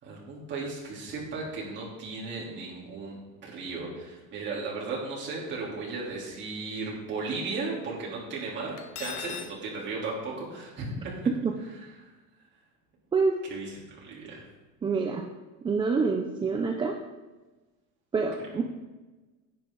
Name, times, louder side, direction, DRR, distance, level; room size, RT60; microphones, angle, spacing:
voice 1, 0.0-11.1 12.0-12.1 13.5-14.5, right 3 dB, 35° right, -5 dB, 3.4 m, -36 dB
Cutlery silverware, 8.8-9.6, left 9 dB, 65° left, 1.1 m, -38 dB
voice 2, 14.8-15.3 15.6-17.0 18.1-18.6, right 4 dB, 15° right, 3 dB, 0.5 m, -26 dB
10.5 x 8.8 x 3.9 m, 1.2 s
cardioid pair, 160°, 34 cm